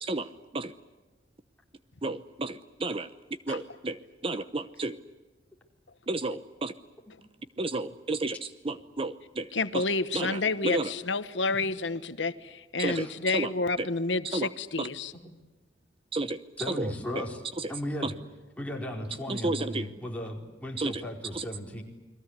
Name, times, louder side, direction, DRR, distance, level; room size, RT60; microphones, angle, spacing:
voice 1, 2.0-3.1 3.5-4.0 4.2-5.0 6.1-6.7 7.6-8.4 8.6-9.5 9.7-9.8 10.1-10.9 12.8-13.1 13.3-13.5 13.8-13.9 14.3-14.5 14.8-14.9 16.1-16.4 16.8-16.9 17.6-17.7 18.0-18.1 19.3-19.9 20.8-20.9 21.3-21.4, right 2 dB, 30° right, 12 dB, 0.8 m, -31 dB
voice 2, 9.5-15.1, left 3 dB, 80° left, 12 dB, 1.2 m, -29 dB
voice 3, 16.6-17.4 17.7-18.1 18.6-21.8, left 1 dB, 10° left, 0 dB, 4.4 m, -36 dB
30.0 x 22.5 x 8.1 m, 1.2 s
head